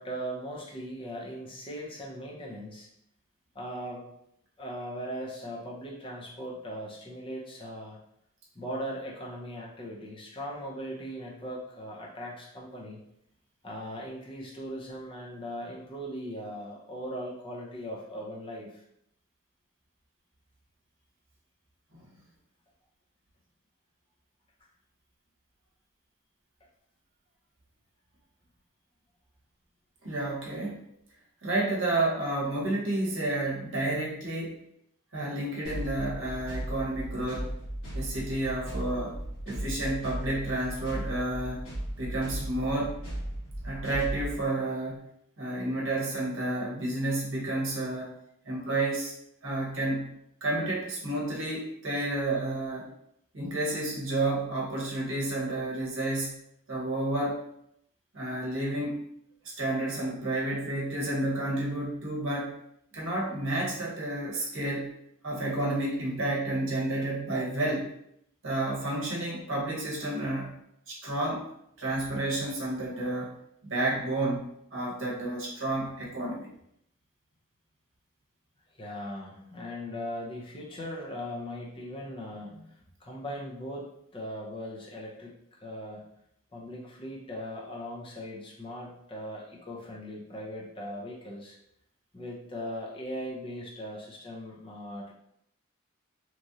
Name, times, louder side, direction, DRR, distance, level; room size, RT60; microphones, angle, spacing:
voice 1, 0.0-2.9 3.5-4.1 4.6-8.0 8.5-13.0 13.6-18.8 78.7-82.6 83.0-86.1 86.5-91.6 92.1-95.1, equal, 25° left, -3 dB, 0.6 m, -39 dB
voice 2, 30.0-30.8 31.4-34.6 35.1-37.5 37.9-39.2 39.5-41.7 42.0-43.0 43.6-45.1 45.4-48.2 48.4-49.1 49.4-50.1 50.4-52.9 53.3-56.4 56.7-57.4 58.1-59.1 59.6-62.6 62.9-64.9 65.2-67.9 68.4-70.6 70.9-71.5 71.8-73.3 73.6-76.5, right 2 dB, 65° right, -3 dB, 0.9 m, -30 dB
sound 1, 35.6-44.4, right 1 dB, 70° left, 1.4 m, -36 dB
3.0 x 2.5 x 2.7 m, 0.74 s
head